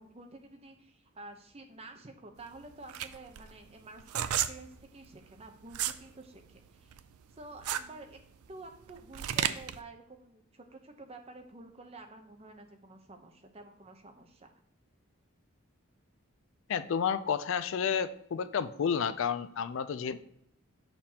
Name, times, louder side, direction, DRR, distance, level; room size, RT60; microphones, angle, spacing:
voice 1, 0.0-7.0 7.3-8.2 8.5-14.5, right 2 dB, 30° right, 5 dB, 0.7 m, -50 dB
sound 1, 2.4-6.0 6.4-9.8, right 10 dB, 90° right, 0.4 m, -33 dB
voice 2, 16.7-20.2, left 7 dB, 60° left, 13 dB, 0.3 m, -31 dB
6.7 x 5.8 x 2.8 m, 0.73 s
head